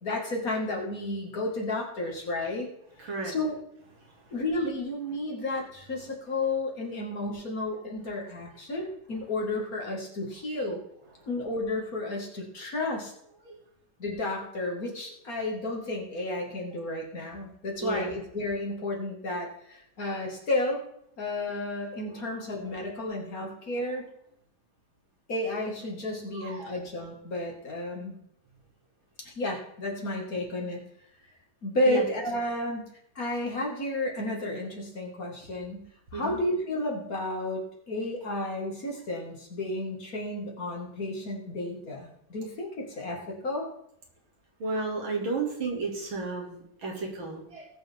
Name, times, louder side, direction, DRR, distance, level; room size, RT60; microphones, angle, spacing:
voice 1, 0.0-2.7 3.0-3.6 4.3-10.8 11.3-13.1 14.0-20.8 21.2-24.1 25.3-28.2 29.2-30.8 31.6-32.9 33.2-43.7, left 2 dB, 45° left, -1 dB, 2.4 m, -32 dB
voice 2, 3.0-3.3 13.5-13.6 17.8-18.1 26.3-26.8 31.9-32.0 36.1-36.4 44.6-47.7, right 3 dB, 80° right, -1 dB, 3.4 m, -32 dB
19.0 x 6.9 x 3.6 m, 0.74 s
omnidirectional pair, 2.2 m